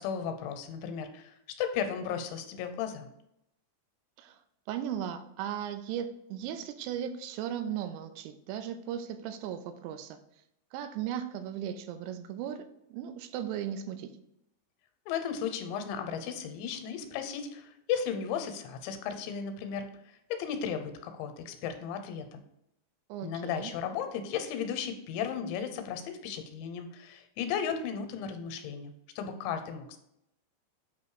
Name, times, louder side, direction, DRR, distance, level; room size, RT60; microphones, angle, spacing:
voice 1, 0.0-3.1 15.1-22.4 23.2-30.0, left 7 dB, 85° left, 3.0 m, -35 dB
voice 2, 4.7-10.2 10.7-14.1 23.1-23.7, right 9 dB, 85° right, 2.8 m, -37 dB
8.2 x 3.1 x 4.7 m
omnidirectional pair, 5.1 m